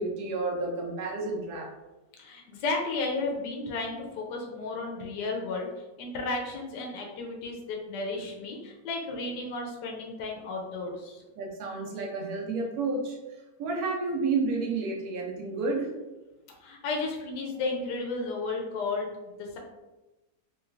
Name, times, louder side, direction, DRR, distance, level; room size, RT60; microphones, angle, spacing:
voice 1, 0.0-1.7 11.4-13.2 13.6-15.9, right 3 dB, 70° right, -1 dB, 1.1 m, -30 dB
voice 2, 2.2-5.7 6.0-11.2 16.6-19.1 19.4-19.6, left 3 dB, 80° left, 0 dB, 1.2 m, -33 dB
3.1 x 3.0 x 2.4 m, 1.1 s
omnidirectional pair, 1.8 m